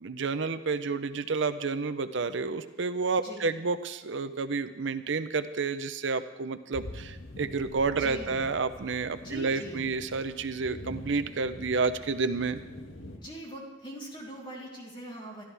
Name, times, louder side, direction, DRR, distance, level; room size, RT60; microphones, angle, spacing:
voice 1, 0.0-12.6, right 4 dB, 65° right, 10 dB, 0.7 m, -30 dB
voice 2, 3.2-3.5 8.0-8.4 9.2-9.9 13.1-15.4, right 1 dB, 25° left, -3 dB, 3.5 m, -42 dB
sound 1, 6.7-13.2, left 1 dB, 80° left, 1.9 m, -45 dB
27.5 x 12.5 x 3.5 m, 1.1 s
head